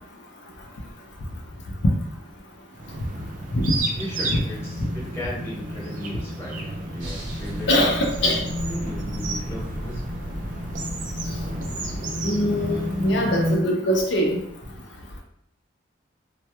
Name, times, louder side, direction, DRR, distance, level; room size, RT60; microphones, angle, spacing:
sound 1, 2.7-13.5, right 1 dB, 40° right, 0.3 m, -31 dB
voice 1, 4.0-10.0, equal, 15° left, -6 dB, 0.7 m, -36 dB
sound 2, 7.0-12.0, equal, 80° right, 0.6 m, -36 dB
voice 2, 7.7-8.4 12.2-14.4, equal, 65° left, 0 dB, 0.4 m, -22 dB
2.2 x 2.1 x 2.8 m, 0.73 s
head